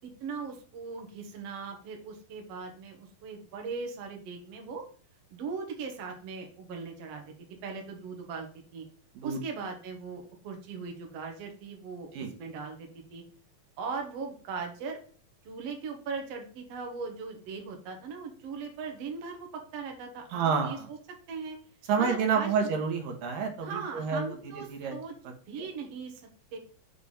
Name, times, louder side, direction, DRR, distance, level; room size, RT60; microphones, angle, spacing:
voice 1, 0.2-4.8 5.3-7.3 7.6-8.9 9.2-12.1 12.4-13.2 13.8-15.0 15.5-20.8 21.3-21.6 22.0-22.5 23.6-24.7 24.9-25.1 25.5-26.2 26.5-26.6, right 5 dB, 60° right, 2 dB, 1.9 m, -39 dB
voice 2, 20.3-20.9 21.9-25.0 25.2-25.7, right 6 dB, 75° right, 4 dB, 2.7 m, -29 dB
6.7 x 3.4 x 5.5 m, 0.44 s
omnidirectional pair, 4.1 m